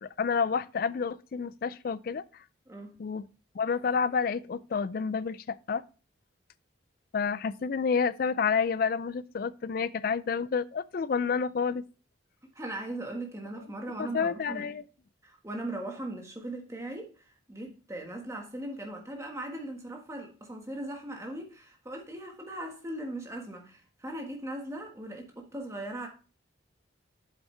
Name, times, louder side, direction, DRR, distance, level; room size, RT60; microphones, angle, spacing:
voice 1, 0.0-2.2 3.0-3.3 3.5-5.8 7.1-11.8 14.0-14.8, left 5 dB, 45° left, 0.3 m, -29 dB
voice 2, 2.7-3.0 12.5-14.7 15.2-26.1, right 1 dB, 15° right, 1.4 m, -39 dB
8.1 x 7.1 x 3.2 m
head